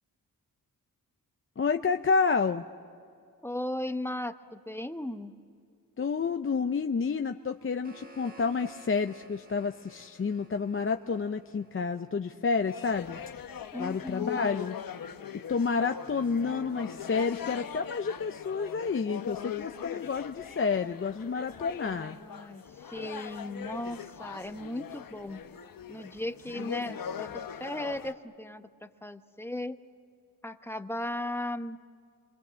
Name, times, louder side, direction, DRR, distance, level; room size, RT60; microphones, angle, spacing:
voice 1, 1.6-2.6 6.0-13.2 13.8-14.7 15.5-22.2, left 5 dB, 35° left, 6 dB, 0.7 m, -29 dB
voice 2, 3.4-5.3 13.7-14.7 21.8-25.4 25.9-29.8 30.4-31.8, left 1 dB, 5° left, 8 dB, 1.0 m, -37 dB
sound 1, 7.4-12.5, right 2 dB, 25° right, 1.7 m, -55 dB
sound 2, 12.7-28.1, left 8 dB, 70° left, 1.0 m, -41 dB
27.5 x 23.5 x 7.6 m, 2.4 s
wide cardioid pair, 90°, 36 cm